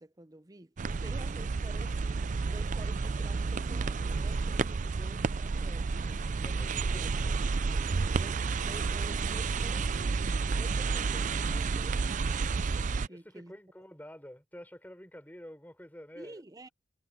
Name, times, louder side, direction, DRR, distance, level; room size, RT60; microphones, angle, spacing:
voice 1, 0.0-6.2 6.7-6.9 7.2-7.7 8.1-10.1 10.5-13.5 16.2-16.7, right 2 dB, 20° right, 0.8 m, -50 dB
sound 1, 0.8-13.1, right 4 dB, 45° right, 0.4 m, -31 dB
voice 2, 5.9-7.2 13.1-16.4, equal, 10° left, 5.0 m, -49 dB
head